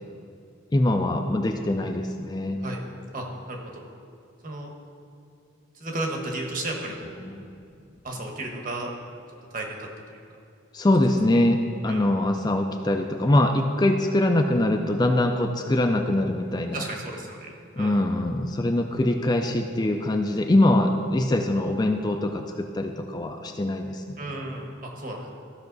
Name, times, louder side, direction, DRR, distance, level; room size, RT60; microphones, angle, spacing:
voice 1, 0.7-2.6 7.2-7.3 10.7-16.8 17.8-24.2, left 1 dB, 20° left, 4 dB, 0.4 m, -23 dB
voice 2, 3.1-3.9 4.4-4.7 5.7-7.4 8.0-8.9 9.5-9.9 11.9-12.1 16.7-17.5 17.8-18.1 24.2-25.3, right 2 dB, 40° right, 1 dB, 1.3 m, -33 dB
14.5 x 5.7 x 4.0 m, 2.5 s
head